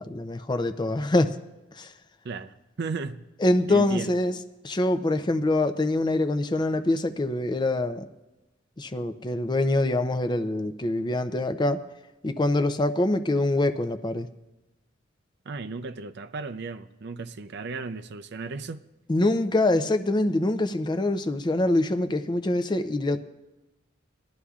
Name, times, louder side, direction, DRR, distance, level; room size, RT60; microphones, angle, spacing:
voice 1, 0.0-1.3 1.8-1.9 3.4-4.4 4.6-8.0 8.8-11.8 12.2-14.3 19.1-23.2, left 2 dB, 20° left, 0.5 m, -24 dB
voice 2, 2.2-3.3 3.7-4.2 15.5-18.8, right 4 dB, 60° right, 0.5 m, -35 dB
20.5 x 11.0 x 2.4 m
head